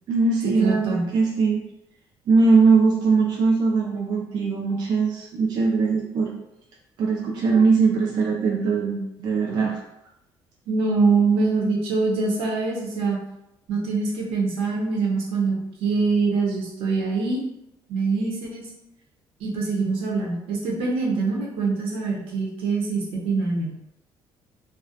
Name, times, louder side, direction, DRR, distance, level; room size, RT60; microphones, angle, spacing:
voice 1, 0.1-1.6 2.3-6.3 7.0-9.8, right 4 dB, 50° right, -1 dB, 0.4 m, -20 dB
voice 2, 0.6-1.1 10.7-13.2 13.7-17.4 17.9-18.7 19.4-23.7, right 4 dB, 85° right, -2 dB, 0.7 m, -24 dB
2.3 x 2.0 x 2.7 m, 0.86 s
cardioid pair, 160°, 9 cm